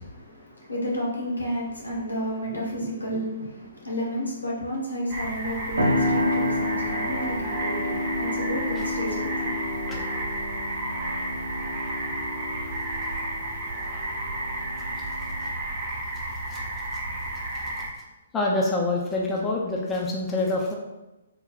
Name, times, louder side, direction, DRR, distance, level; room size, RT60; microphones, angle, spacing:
voice 1, 0.0-10.0, equal, 85° left, -4 dB, 1.1 m, -32 dB
sound 1, 5.1-17.9, right 1 dB, 40° right, 0.7 m, -32 dB
sound 2, 5.8-15.5, left 1 dB, 85° right, 0.7 m, -30 dB
voice 2, 9.9-10.2 16.5-16.6 18.3-20.7, left 2 dB, 15° left, -2 dB, 0.5 m, -26 dB
3.5 x 2.2 x 3.8 m, 1.0 s
figure-of-eight pair, 125°, 0 cm